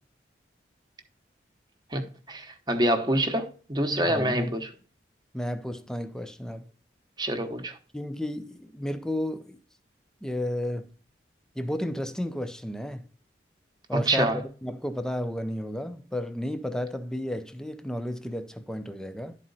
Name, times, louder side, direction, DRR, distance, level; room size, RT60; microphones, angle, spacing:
voice 1, 1.9-4.7 7.2-7.8 13.9-14.4, right 1 dB, 20° right, 0.9 m, -26 dB
voice 2, 4.1-4.5 5.3-6.6 7.9-9.6 10.2-10.9 11.6-13.0 13.9-19.4, left 1 dB, 5° left, 0.5 m, -32 dB
11.5 x 4.3 x 3.9 m
head